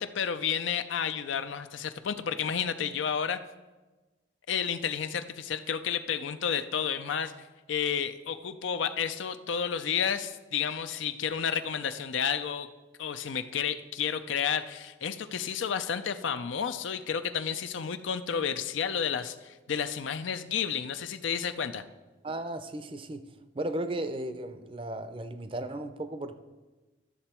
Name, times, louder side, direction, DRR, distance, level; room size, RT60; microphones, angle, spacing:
voice 1, 0.0-3.4 4.5-7.3 7.7-12.7 13.0-21.8, left 7 dB, 80° left, 10 dB, 0.5 m, -31 dB
voice 2, 22.2-23.2 23.5-26.4, right 1 dB, 25° right, 10 dB, 0.5 m, -35 dB
12.5 x 6.8 x 4.4 m, 1.2 s
head